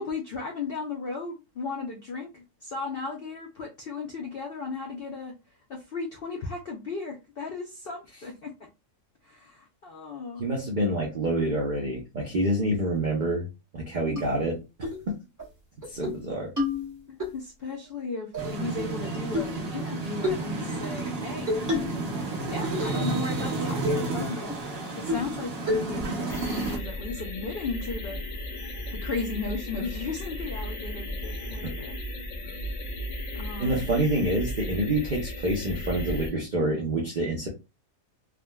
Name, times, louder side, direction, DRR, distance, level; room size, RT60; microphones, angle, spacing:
voice 1, 0.0-5.3 5.7-8.5 9.2-10.4 17.1-21.9 22.5-24.5 25.0-28.2 29.0-32.0 33.3-33.8, left 4 dB, 85° left, 1 dB, 0.5 m, -35 dB
voice 2, 10.4-13.4 13.7-14.9 15.9-16.5 31.6-31.7 33.6-37.5, right 1 dB, 75° right, -1 dB, 0.4 m, -27 dB
sound 1, 14.2-14.3 14.8-15.0 15.4-15.5 15.8-16.2 16.6-17.3 18.3-19.0 19.3-19.6 20.2-20.4 21.5-22.1 22.4-23.1 23.4-23.5 23.8-24.1 24.5-24.6 25.1-25.4 25.7-26.1, left 2 dB, 15° right, 0.7 m, -29 dB
sound 2, 18.4-26.8, right 3 dB, 50° right, 0.8 m, -32 dB
sound 3, 26.3-36.3, left 1 dB, 60° left, 0.8 m, -35 dB
3.5 x 2.1 x 2.2 m, 0.26 s
omnidirectional pair, 1.7 m